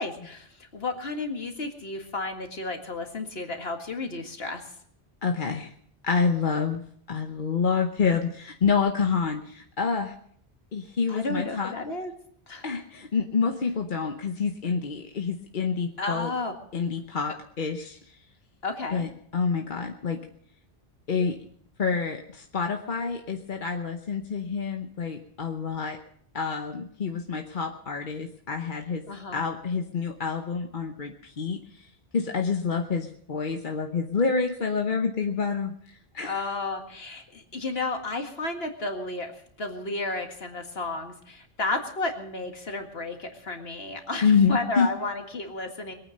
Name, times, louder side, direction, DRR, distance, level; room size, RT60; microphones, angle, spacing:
voice 1, 0.0-4.7 11.1-12.1 12.5-12.6 16.0-16.5 18.6-19.1 29.1-29.4 36.2-39.3 39.6-45.9, left 3 dB, 65° left, 5 dB, 2.2 m, -32 dB
voice 2, 5.2-5.7 6.0-6.8 7.1-10.1 10.7-11.7 12.6-16.3 16.7-18.2 18.9-20.2 21.1-21.4 21.8-26.0 26.3-29.1 29.3-36.5 44.2-44.9, left 5 dB, 50° left, 5 dB, 1.1 m, -27 dB
22.0 x 9.2 x 6.5 m, 0.64 s
omnidirectional pair, 1.1 m